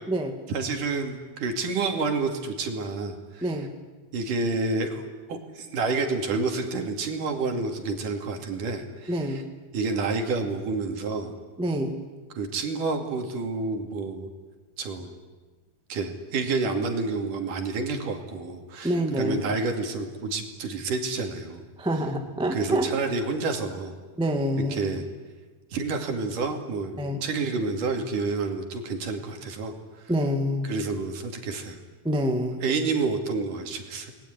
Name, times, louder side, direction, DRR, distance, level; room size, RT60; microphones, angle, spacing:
voice 1, 0.5-3.5 4.1-5.0 5.3-9.4 9.7-11.4 12.3-14.3 14.8-15.1 15.9-21.6 22.5-23.9 24.7-25.0 25.7-29.7 30.6-31.8 32.6-34.1, right 3 dB, 55° right, 4 dB, 3.8 m, -29 dB
voice 2, 9.1-9.4 11.6-11.9 18.8-19.4 21.8-23.0 24.2-24.8 27.0-27.2 30.1-30.7 32.0-32.6, equal, ahead, 4 dB, 1.1 m, -26 dB
29.5 x 20.5 x 9.5 m, 1.3 s
omnidirectional pair, 4.8 m